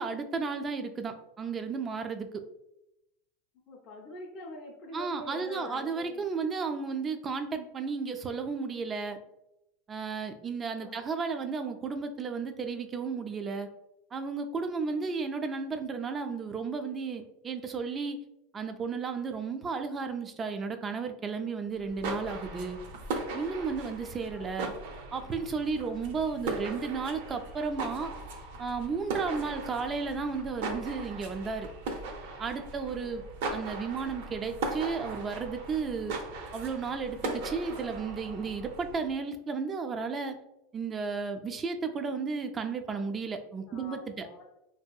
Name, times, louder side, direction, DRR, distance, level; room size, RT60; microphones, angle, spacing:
voice 1, 0.0-2.4 4.9-9.2 9.9-13.7 14.1-18.2 18.5-22.8 23.3-24.7 25.1-28.1 28.6-31.7 32.4-33.2 33.5-36.1 36.5-40.4 40.7-44.3, right 5 dB, 20° right, 7 dB, 0.3 m, -33 dB
voice 2, 3.7-6.3 10.8-11.1 14.8-15.0 24.3-24.6 25.7-26.0 29.2-29.5 33.0-33.2 43.7-44.6, left 1 dB, 35° left, -3 dB, 0.5 m, -45 dB
sound 1, 21.8-39.1, right 3 dB, 70° right, 0.5 m, -39 dB
2.8 x 2.7 x 2.3 m, 0.86 s
supercardioid pair, 135°, 0 cm